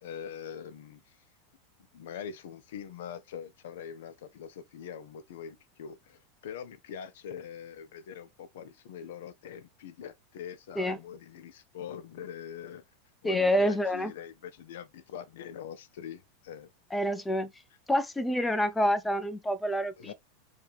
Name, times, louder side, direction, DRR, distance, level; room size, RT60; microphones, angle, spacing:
voice 1, 0.0-1.2 1.9-12.8 13.2-16.7 20.0-20.1, left 8 dB, 70° left, 0.4 m, -43 dB
voice 2, 13.2-14.1 16.9-17.5 17.9-20.1, equal, 10° left, 0.5 m, -27 dB
4.4 x 2.3 x 3.2 m
hypercardioid pair, 95°, 0 cm